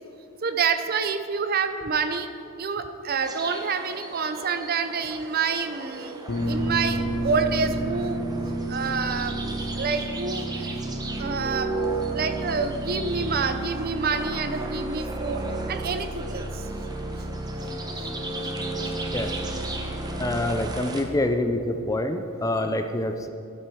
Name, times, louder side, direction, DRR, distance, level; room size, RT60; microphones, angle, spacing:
voice 1, 0.4-2.3 2.6-6.2 6.5-8.2 8.7-9.3 9.7-10.8 11.2-11.7 12.1-15.4 15.7-16.7 18.0-18.1, right 5 dB, 45° right, 9 dB, 0.6 m, -27 dB
sound 1, 3.2-21.0, right 3 dB, 20° right, 0.9 m, -36 dB
sound 2, 6.3-15.9, right 2 dB, 60° left, 0.9 m, -33 dB
sound 3, 6.3-20.6, right 1 dB, 70° right, 2.7 m, -35 dB
voice 2, 20.2-23.3, left 1 dB, 15° left, 7 dB, 0.4 m, -26 dB
12.0 x 7.7 x 4.7 m, 2.6 s
head